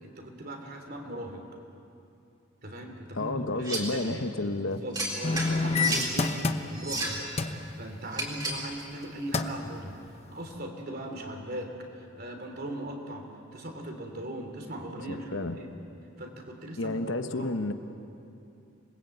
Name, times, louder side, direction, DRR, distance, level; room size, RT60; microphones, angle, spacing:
voice 1, 0.0-1.5 2.6-4.2 4.6-6.4 6.7-7.3 7.8-10.0 10.3-15.7 16.2-17.5, right 1 dB, 50° right, 3 dB, 3.2 m, -39 dB
voice 2, 3.1-4.8 15.1-15.6 16.8-17.7, left 2 dB, 65° left, 8 dB, 1.1 m, -31 dB
sound 1, 3.6-4.0 4.9-6.1 6.7-7.3 8.1-8.7, right 2 dB, 20° right, 3.7 m, -32 dB
sound 2, 5.2-7.0 7.4-7.6 8.9-9.0 9.3-9.7 10.2-10.3, left 3 dB, 30° left, 0.9 m, -28 dB
27.0 x 20.5 x 8.0 m, 2.7 s
head